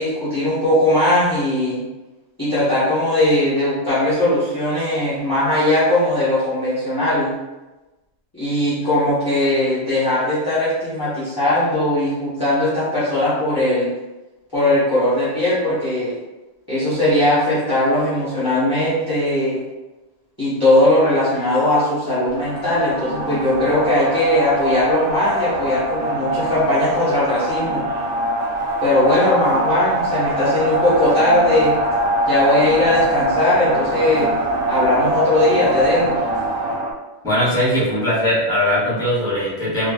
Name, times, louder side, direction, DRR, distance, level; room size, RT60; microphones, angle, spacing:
voice 1, 0.0-1.8 2.4-7.3 8.3-13.9 14.5-16.1 16.7-19.6 20.4-27.9 28.8-31.8 32.2-34.3 34.7-36.2, left 1 dB, 20° left, -11 dB, 0.8 m, -19 dB
sound 1, 22.3-36.9, right 1 dB, 65° right, 0.8 m, -23 dB
voice 2, 37.2-39.9, equal, 5° left, -10 dB, 1.2 m, -20 dB
3.3 x 2.4 x 2.3 m, 1.1 s
omnidirectional pair, 1.2 m